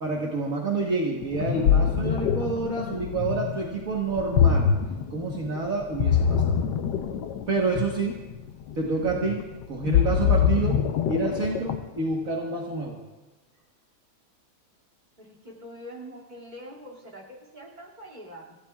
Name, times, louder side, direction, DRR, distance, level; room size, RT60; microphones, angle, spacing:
voice 1, 0.0-4.7 5.1-6.6 7.5-8.2 8.8-13.0, right 3 dB, 55° right, -2 dB, 1.8 m, -28 dB
Ocean, 1.2-12.0, left 7 dB, 80° left, 1.4 m, -24 dB
voice 2, 15.2-18.6, equal, 25° right, -1 dB, 2.6 m, -44 dB
28.0 x 15.5 x 2.4 m, 1.1 s
omnidirectional pair, 1.8 m